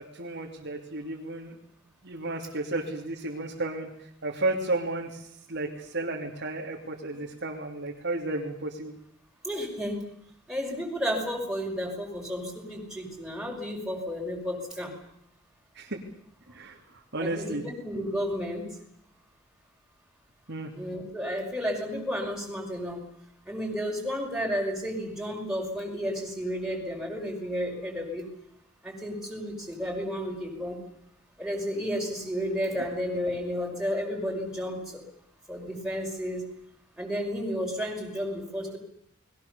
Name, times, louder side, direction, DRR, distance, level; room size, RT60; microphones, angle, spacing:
voice 1, 0.0-1.6 2.0-8.9 15.7-16.0 16.5-17.6 20.5-20.7, right 2 dB, 60° right, -1 dB, 2.9 m, -33 dB
voice 2, 9.4-10.0 10.5-14.9 17.2-18.6 20.7-23.0 23.5-28.2 28.8-30.8 31.4-35.0 35.5-36.4 37.0-38.8, equal, 5° right, -2 dB, 5.4 m, -32 dB
29.5 x 21.0 x 7.0 m, 0.71 s
head